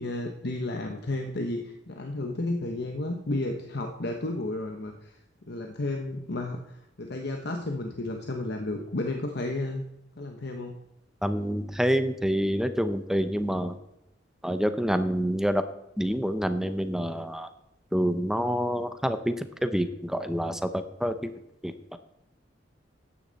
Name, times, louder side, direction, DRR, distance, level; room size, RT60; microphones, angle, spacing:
voice 1, 0.0-9.8 10.2-10.7, left 2 dB, 60° left, 3 dB, 1.2 m, -32 dB
voice 2, 11.2-13.8 14.4-15.6 16.0-17.5 17.9-21.3 21.6-22.0, equal, 5° right, 10 dB, 0.7 m, -27 dB
14.0 x 10.0 x 4.1 m, 0.86 s
head